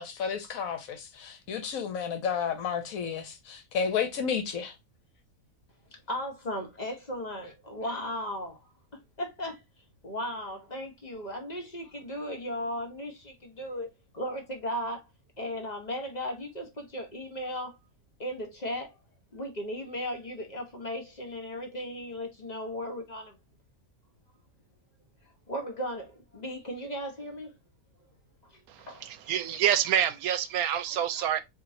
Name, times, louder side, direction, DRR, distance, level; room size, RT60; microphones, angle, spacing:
voice 1, 0.0-4.7, left 6 dB, 70° left, 1.2 m, -32 dB
voice 2, 6.1-8.6 8.9-9.6 10.0-15.1 15.4-17.8 18.2-18.9 19.3-23.3 25.5-27.5 28.5-29.1 30.9-31.3, equal, 35° left, 0.9 m, -36 dB
voice 3, 28.7-31.4, right 10 dB, 80° right, 1.0 m, -27 dB
4.4 x 2.8 x 2.6 m
omnidirectional pair, 1.6 m